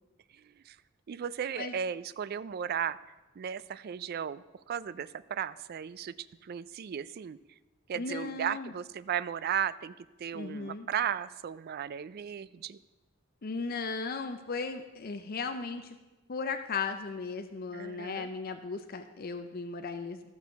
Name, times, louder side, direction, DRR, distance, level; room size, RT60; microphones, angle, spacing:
voice 1, 0.3-0.8 1.1-3.0 3.4-6.1 6.4-7.4 7.9-12.8 17.7-18.3, right 8 dB, 45° right, 17 dB, 0.3 m, -35 dB
voice 2, 8.0-8.7 10.3-10.9 13.4-15.9 16.3-20.3, left 4 dB, 45° left, 7 dB, 0.5 m, -36 dB
13.5 x 6.2 x 5.7 m, 1.1 s
head